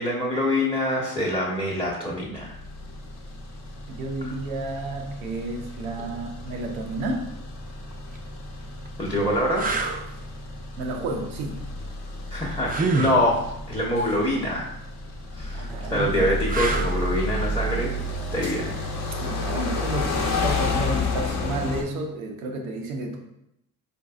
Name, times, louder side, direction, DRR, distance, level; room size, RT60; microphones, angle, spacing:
voice 1, 0.0-2.5 4.2-4.3 9.0-9.7 12.3-14.7 15.3-17.9 18.3-18.7, left 1 dB, 10° left, -5 dB, 0.9 m, -25 dB
sound 1, 2.4-21.8, left 2 dB, 40° left, 0.8 m, -31 dB
voice 2, 3.9-7.3 10.8-11.6 15.5-16.3 16.7-17.0 19.2-23.3, right 2 dB, 90° right, 3 dB, 0.6 m, -31 dB
sound 2, 8.0-8.2 8.9-9.0 9.6-10.0 12.7-13.2 16.5-17.1 20.0-20.2, right 3 dB, 20° right, 0.4 m, -26 dB
4.5 x 2.6 x 2.3 m, 0.80 s
hypercardioid pair, 55°, 41 cm